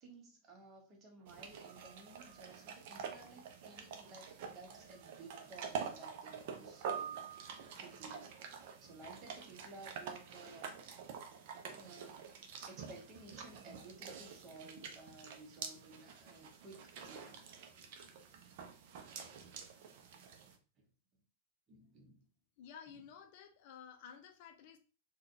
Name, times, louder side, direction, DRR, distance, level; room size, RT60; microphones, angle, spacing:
voice 1, 0.0-8.3 8.8-10.7 11.7-12.2 12.7-17.4 20.8-20.9 21.7-22.2, right 2 dB, 30° right, 0.9 m, -56 dB
sound 1, 1.3-20.6, right 7 dB, 50° right, 0.5 m, -47 dB
voice 2, 22.6-24.8, left 7 dB, 50° left, 0.4 m, -53 dB
3.5 x 2.2 x 2.6 m
figure-of-eight pair, 90°, 0 cm